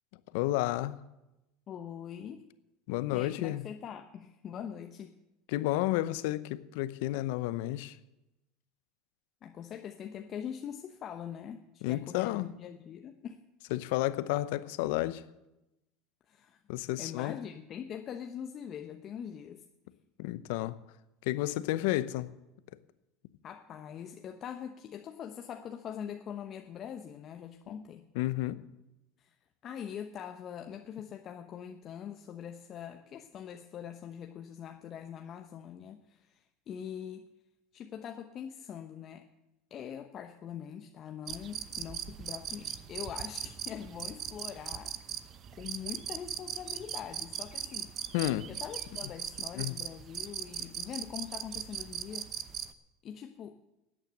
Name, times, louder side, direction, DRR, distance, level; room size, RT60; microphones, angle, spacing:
voice 1, 0.3-1.0 2.9-3.6 5.5-8.0 11.8-12.5 13.7-15.2 16.7-17.3 20.2-20.8 21.2-22.3 27.7-27.8 28.1-28.6 48.1-48.5 49.5-49.8, left 16 dB, 70° left, 15 dB, 0.7 m, -31 dB
voice 2, 1.7-2.5 3.1-5.1 9.4-13.4 16.3-16.6 17.0-19.6 23.4-28.0 29.2-29.4 29.6-37.3 37.7-39.3 39.7-45.2 45.6-47.9 48.5-52.3 53.0-53.6, left 8 dB, 45° left, 5 dB, 1.0 m, -43 dB
sound 1, 41.3-52.7, right 9 dB, 45° right, 0.9 m, -40 dB
13.5 x 8.9 x 7.8 m, 0.94 s
hypercardioid pair, 85°, 0 cm